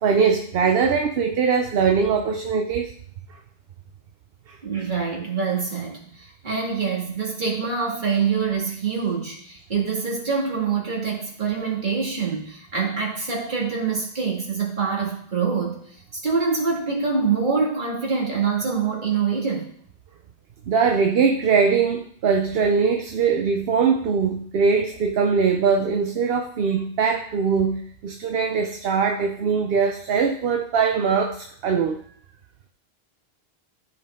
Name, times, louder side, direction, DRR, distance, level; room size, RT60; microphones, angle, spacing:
voice 1, 0.0-2.9 4.5-4.6 20.7-32.0, right 5 dB, 70° right, 5 dB, 0.9 m, -21 dB
voice 2, 4.6-15.8 16.2-19.7, right 5 dB, 50° right, -2 dB, 2.3 m, -25 dB
14.0 x 4.7 x 3.7 m, 0.63 s
omnidirectional pair, 1.0 m